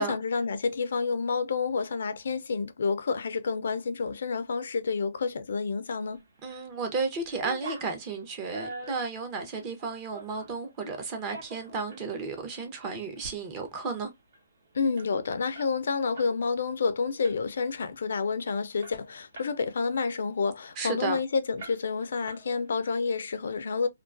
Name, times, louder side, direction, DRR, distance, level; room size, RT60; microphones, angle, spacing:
voice 1, 0.0-6.2 14.7-23.9, left 5 dB, 65° left, 0.4 m, -29 dB
sound 1, 6.1-6.7 7.0-10.6 11.1-12.1 12.5-12.6 13.0-13.4 13.7-13.8 14.0-16.4 16.7-16.9 17.2-17.7 18.1-18.2 18.5-19.6 20.0-21.1 21.6-22.0 22.3-22.9, right 3 dB, 55° right, 0.9 m, -45 dB
voice 2, 6.4-14.1 20.8-21.2, right 4 dB, 25° right, 0.6 m, -33 dB
2.2 x 2.2 x 2.4 m
hypercardioid pair, 160°, 0 cm